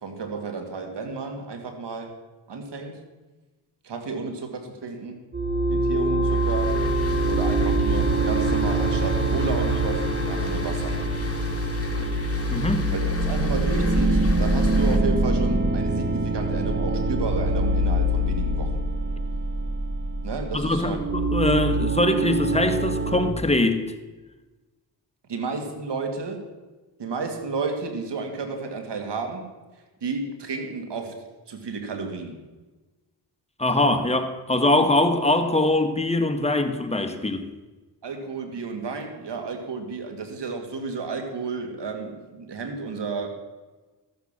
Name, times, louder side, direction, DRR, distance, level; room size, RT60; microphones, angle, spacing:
voice 1, 0.0-2.1 2.5-3.0 3.8-5.2 5.7-6.8 7.2-11.0 12.9-13.0 13.3-18.8 20.2-21.0 25.3-26.4 27.0-29.5 30.0-32.4 38.0-43.3, right 4 dB, 75° right, 2.2 m, -32 dB
sound 1, 5.3-23.3, right 2 dB, 25° right, 1.2 m, -24 dB
sound 2, 6.2-15.0, left 4 dB, 35° left, 2.0 m, -32 dB
voice 2, 12.5-12.9 20.5-23.8 33.6-37.5, left 2 dB, 15° left, 1.5 m, -22 dB
13.0 x 7.2 x 7.4 m
cardioid pair, 55°, 42 cm